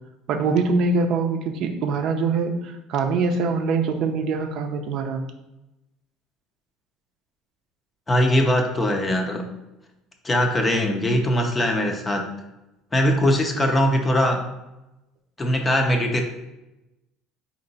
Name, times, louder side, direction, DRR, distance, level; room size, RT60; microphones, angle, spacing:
voice 1, 0.3-5.2, right 4 dB, 55° right, 6 dB, 0.6 m, -23 dB
voice 2, 8.1-9.5 10.2-12.3 12.9-14.4 15.4-16.2, equal, 15° left, 3 dB, 0.5 m, -21 dB
4.4 x 2.9 x 4.0 m, 0.96 s
cardioid pair, 140°, 0 cm